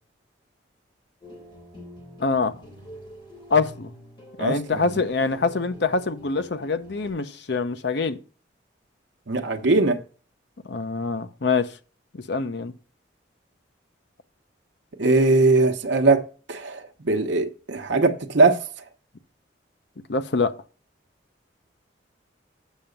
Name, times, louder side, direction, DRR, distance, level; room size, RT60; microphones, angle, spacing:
sound 1, 1.2-7.1, equal, 25° left, 3.4 m, -45 dB
voice 1, 2.2-2.6 3.5-3.9 4.4-8.2 10.6-11.7 12.1-12.7 20.1-20.5, left 4 dB, 60° left, 0.7 m, -25 dB
voice 2, 4.4-5.0 9.3-10.0 15.0-16.2 16.5-18.7, right 3 dB, 70° right, 0.8 m, -20 dB
7.4 x 5.7 x 5.2 m
head